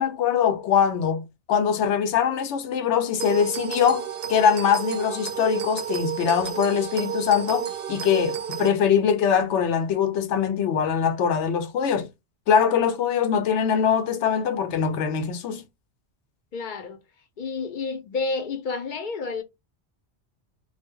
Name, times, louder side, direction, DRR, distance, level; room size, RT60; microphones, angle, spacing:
voice 1, 0.0-12.1 12.5-15.6, left 7 dB, 80° left, 0.9 m, -22 dB
sound 1, 3.2-8.7, right 9 dB, 60° right, 0.7 m, -31 dB
voice 2, 16.5-17.0 17.4-19.4, left 4 dB, 55° left, 0.6 m, -30 dB
2.1 x 2.1 x 3.5 m
omnidirectional pair, 1.2 m